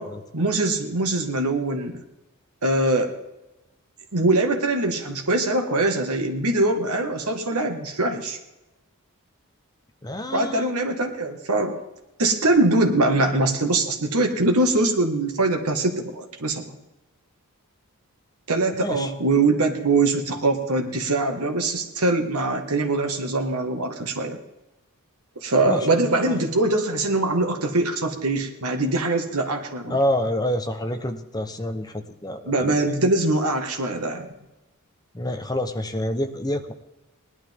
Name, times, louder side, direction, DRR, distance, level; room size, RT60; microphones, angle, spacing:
voice 1, 0.3-1.9 2.6-3.1 4.1-8.4 10.3-11.8 12.2-16.8 18.5-24.4 25.4-30.0 32.5-34.3, right 2 dB, 80° right, 4 dB, 1.8 m, -22 dB
voice 2, 10.0-10.7 18.8-19.1 25.7-26.3 29.9-32.8 35.1-36.7, left 1 dB, 20° left, 7 dB, 1.0 m, -27 dB
19.0 x 11.5 x 3.7 m, 0.98 s
head